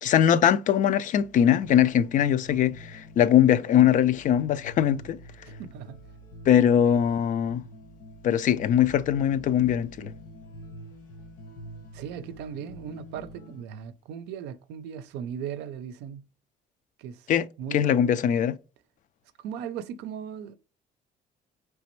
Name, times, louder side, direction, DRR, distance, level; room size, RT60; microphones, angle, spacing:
voice 1, 0.0-5.2 6.5-7.6 8.2-10.1 17.3-18.6, left 9 dB, 50° left, 0.4 m, -21 dB
sound 1, 1.2-13.6, equal, 75° left, 1.3 m, -46 dB
voice 2, 5.4-6.1 6.8-7.0 11.9-16.3 17.0-17.3 17.6-18.2 19.4-20.6, right 8 dB, 85° right, 0.5 m, -38 dB
5.1 x 3.3 x 3.0 m
cardioid pair, 110°, 17 cm